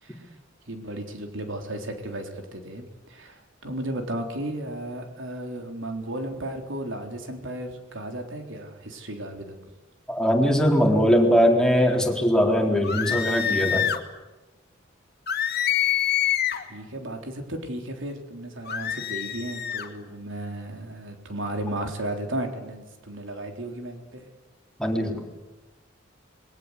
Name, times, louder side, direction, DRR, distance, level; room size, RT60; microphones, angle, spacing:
voice 1, 0.7-9.6 16.5-24.3, right 1 dB, 65° right, 4 dB, 3.7 m, -34 dB
voice 2, 10.1-13.9 24.8-25.2, equal, 5° left, 1 dB, 4.0 m, -21 dB
sound 1, 12.8-14.0 15.3-16.7 18.6-19.9, left 10 dB, 55° left, 2.4 m, -26 dB
27.5 x 22.0 x 8.2 m, 1.1 s
head